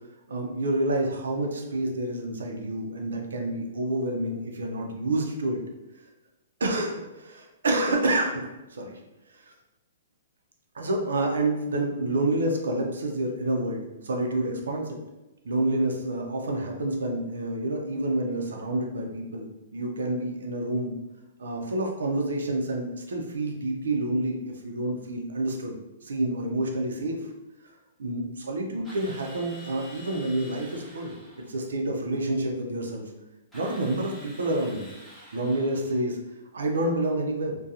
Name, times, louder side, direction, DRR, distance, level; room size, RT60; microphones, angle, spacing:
voice 1, 0.3-5.6 6.6-9.0 9.3-9.5 10.7-15.0 15.4-20.9 21.4-25.8 26.0-27.3 28.0-31.1 31.4-33.0 33.5-34.9 35.3-36.2 36.5-37.6, right 1 dB, 85° right, 1 dB, 0.5 m, -28 dB
Drill, 28.8-31.5 33.5-36.0, equal, 5° left, 0.7 m, -48 dB
2.4 x 2.2 x 2.7 m, 1.0 s
hypercardioid pair, 145°, 0 cm